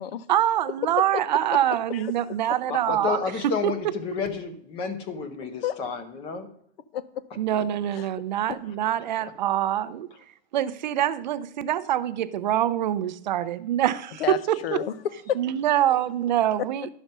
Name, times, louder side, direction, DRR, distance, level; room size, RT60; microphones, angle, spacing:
voice 1, 0.3-3.2 3.6-3.7 7.4-10.1 10.5-14.6 15.4-16.9, right 12 dB, 45° right, 0.5 m, -25 dB
voice 2, 1.9-2.4 5.6-5.8 6.9-7.2 7.9-8.1 8.5-8.6 14.2-15.4, left 10 dB, 60° left, 0.9 m, -30 dB
voice 3, 2.7-6.5, left 5 dB, 15° left, 0.7 m, -31 dB
11.5 x 6.0 x 5.3 m
supercardioid pair, 170°, 33 cm